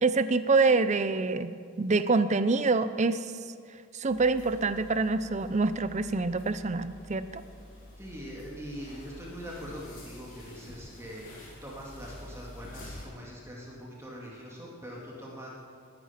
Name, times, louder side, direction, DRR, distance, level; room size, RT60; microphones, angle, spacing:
voice 1, 0.0-3.3 3.9-7.4, right 3 dB, 35° right, 13 dB, 0.5 m, -26 dB
sound 1, 4.1-13.1, left 1 dB, 40° left, 3.6 m, -48 dB
voice 2, 8.0-15.5, equal, 10° right, -4 dB, 2.3 m, -43 dB
20.5 x 9.7 x 5.9 m, 2.2 s
head